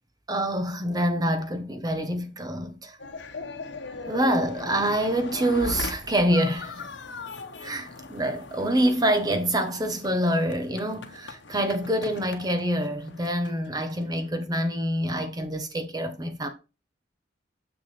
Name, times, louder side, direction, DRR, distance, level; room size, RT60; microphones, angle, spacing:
voice 1, 0.3-3.0 4.1-6.9 7.6-16.5, right 1 dB, 20° right, 0.9 m, -26 dB
sound 1, 3.0-14.3, left 3 dB, 80° left, 1.1 m, -39 dB
6.9 x 6.6 x 3.3 m
head